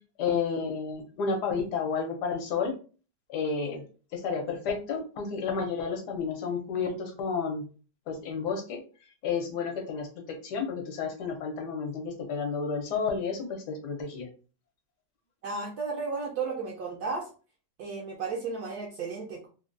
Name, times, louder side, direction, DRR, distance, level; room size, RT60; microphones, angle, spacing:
voice 1, 0.2-2.7 3.3-3.9 4.1-7.6 8.1-8.8 9.2-14.3, left 5 dB, 70° left, 3 dB, 1.3 m, -31 dB
voice 2, 15.4-17.3 17.8-19.5, right 4 dB, 70° right, -1 dB, 1.0 m, -34 dB
3.3 x 2.2 x 2.5 m, 0.37 s
omnidirectional pair, 1.9 m